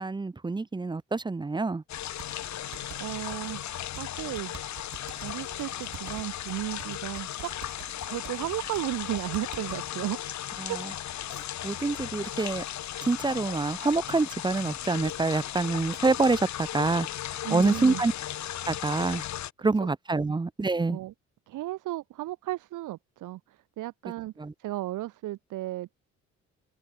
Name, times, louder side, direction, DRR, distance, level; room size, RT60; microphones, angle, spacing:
voice 1, 0.0-1.8 10.6-10.7 11.6-12.6 13.1-17.1 17.5-18.1 18.7-19.2 19.6-21.0 24.4-24.5, right 3 dB, 15° right, 0.7 m, -26 dB
sound 1, 1.9-19.5, left 12 dB, 65° left, 1.5 m, -36 dB
sound 2, 2.2-9.9, right 10 dB, 65° right, 5.2 m, -48 dB
voice 2, 3.0-4.5 5.2-7.5 8.1-10.2 10.6-10.8 17.4-18.0 19.6-19.9 20.9-21.1 21.5-24.3 24.6-25.9, right 16 dB, 90° right, 3.2 m, -34 dB
open air
cardioid pair, 90°, 30 cm